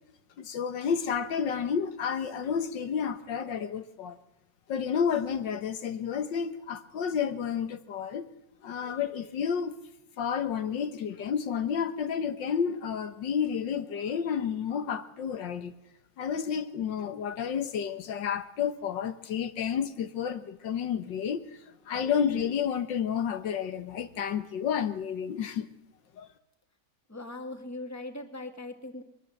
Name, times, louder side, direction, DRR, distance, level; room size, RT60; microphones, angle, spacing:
voice 1, 0.4-4.2 4.7-8.3 8.6-9.7 10.2-15.7 16.2-21.4 21.9-25.7 26.2-26.3, left 7 dB, 80° left, 1.9 m, -30 dB
voice 2, 27.1-29.0, left 2 dB, 10° left, 2.0 m, -40 dB
22.5 x 20.5 x 7.9 m
omnidirectional pair, 1.9 m